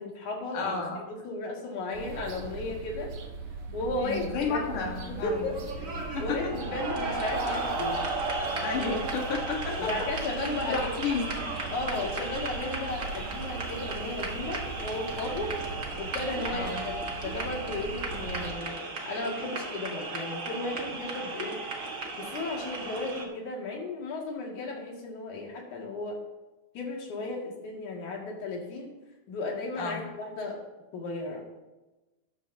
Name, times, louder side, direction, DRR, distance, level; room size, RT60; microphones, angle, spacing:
voice 1, 0.0-3.1 3.7-8.0 9.8-11.1 11.7-15.6 16.0-18.8 19.1-21.6 22.2-26.2 26.8-28.9 29.3-30.6 30.9-31.4, left 2 dB, 75° left, -1 dB, 3.5 m, -35 dB
voice 2, 0.5-1.0 3.9-5.5 6.1-6.6 8.4-9.9 10.7-11.5 16.5-16.8 29.8-30.0, left 5 dB, 90° left, 1 dB, 3.0 m, -32 dB
sound 1, 1.9-18.5, right 4 dB, 75° right, 2.5 m, -40 dB
sound 2, 5.3-23.2, right 3 dB, 40° right, 1.1 m, -35 dB
13.0 x 11.5 x 2.7 m, 1.1 s
omnidirectional pair, 3.5 m